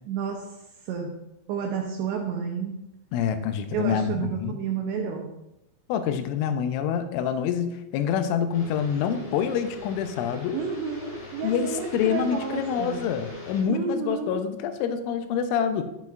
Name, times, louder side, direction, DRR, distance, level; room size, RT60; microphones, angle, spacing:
voice 1, 0.1-1.1 1.5-2.8 3.7-5.3 10.5-13.0 13.7-14.4, right 6 dB, 80° right, 1 dB, 2.5 m, -31 dB
voice 2, 3.1-4.6 5.9-10.6 11.4-15.8, left 8 dB, 85° left, 9 dB, 3.0 m, -26 dB
sound 1, 8.5-13.6, left 3 dB, 50° left, 2.2 m, -41 dB
10.5 x 8.3 x 2.3 m, 0.89 s
omnidirectional pair, 5.6 m